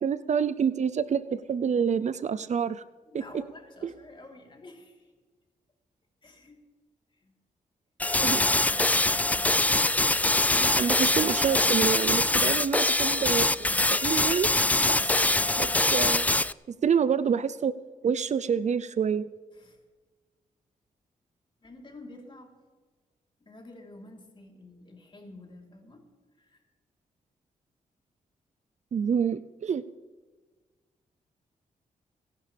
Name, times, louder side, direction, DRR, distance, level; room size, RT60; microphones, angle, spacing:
voice 1, 0.0-2.8 3.1-3.2 3.8-3.9 8.2-8.4 8.8-8.9 10.6-14.5 14.9-16.3 16.8-17.7 18.0-19.3 28.9-29.8, right 7 dB, 55° right, 15 dB, 0.6 m, -27 dB
voice 2, 3.1-5.1 6.2-6.6 7.2-7.4 10.4-10.8 14.8-15.0 19.5-19.8 21.6-22.5 23.4-26.1 26.4-26.6, left 2 dB, 35° left, 1 dB, 3.7 m, -49 dB
sound 1, 8.0-16.5, left 2 dB, 10° left, 0.4 m, -24 dB
26.0 x 11.0 x 3.4 m, 1.4 s
cardioid pair, 60°, 14 cm